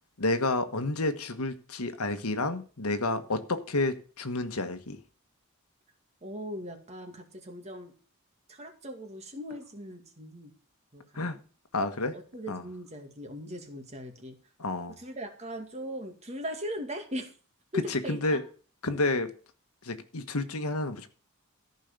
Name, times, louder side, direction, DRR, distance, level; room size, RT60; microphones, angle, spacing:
voice 1, 0.2-5.0 11.1-11.4 11.7-12.1 12.5-12.6 14.6-15.0 17.7-18.4 18.8-19.3 19.8-21.1, left 2 dB, 80° left, 1.4 m, -30 dB
voice 2, 6.2-7.9 8.5-10.5 10.9-11.4 12.1-14.4 15.0-17.3 17.7-18.4, equal, 30° right, 2.1 m, -39 dB
14.0 x 5.5 x 6.7 m
head